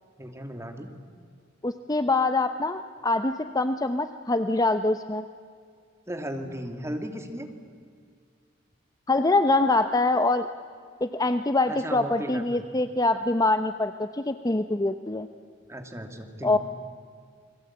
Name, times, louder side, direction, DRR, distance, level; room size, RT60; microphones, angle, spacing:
voice 1, 0.2-0.9 6.1-7.5 11.7-12.7 15.7-16.6, equal, 15° right, 4 dB, 2.5 m, -36 dB
voice 2, 1.6-5.2 9.1-10.5 11.0-15.3 16.4-16.6, left 2 dB, 20° left, 9 dB, 0.7 m, -24 dB
29.5 x 22.0 x 8.7 m, 2.1 s
head